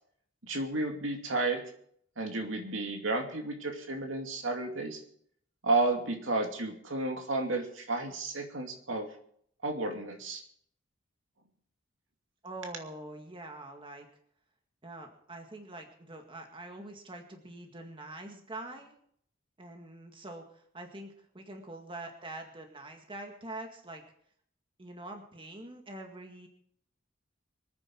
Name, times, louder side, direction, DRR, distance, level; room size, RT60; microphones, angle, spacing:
voice 1, 0.4-1.6 2.2-5.0 5.6-9.1 9.6-10.4, right 2 dB, 70° right, 3 dB, 2.6 m, -32 dB
voice 2, 12.4-14.1 14.8-19.0 19.6-24.0 24.8-26.5, right 2 dB, 25° right, 3 dB, 1.9 m, -44 dB
24.5 x 9.7 x 4.6 m, 0.65 s
head